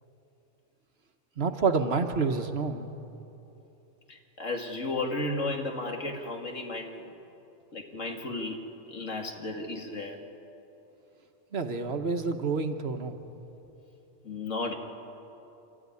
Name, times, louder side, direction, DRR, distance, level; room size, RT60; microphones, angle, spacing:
voice 1, 1.4-2.9 11.5-13.1, right 4 dB, 55° right, 7 dB, 1.4 m, -28 dB
voice 2, 4.1-7.1 7.7-8.6 8.9-10.2 14.2-14.7, left 2 dB, 80° left, 2 dB, 2.6 m, -34 dB
27.5 x 13.5 x 9.8 m, 2.9 s
omnidirectional pair, 1.3 m